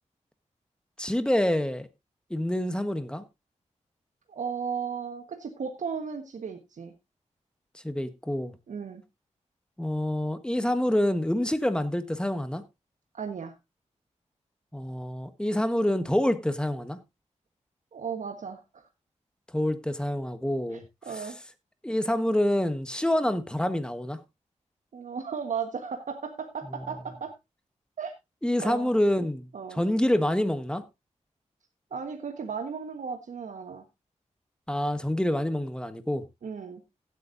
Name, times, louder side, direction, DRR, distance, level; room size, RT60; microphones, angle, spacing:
voice 1, 1.0-1.9 2.3-3.2 7.8-8.5 9.8-12.6 14.7-17.0 19.5-20.8 21.8-24.2 28.4-30.8 34.7-36.2, left 1 dB, 5° left, 1.3 m, -27 dB
voice 2, 4.3-6.9 8.7-9.0 13.1-13.5 17.9-18.8 20.7-21.4 24.9-27.3 28.0-28.1 28.6-28.9 29.5-29.8 31.9-33.8 36.4-36.8, right 6 dB, 80° right, 1.4 m, -35 dB
16.5 x 8.3 x 2.6 m
wide cardioid pair, 85°, 13 cm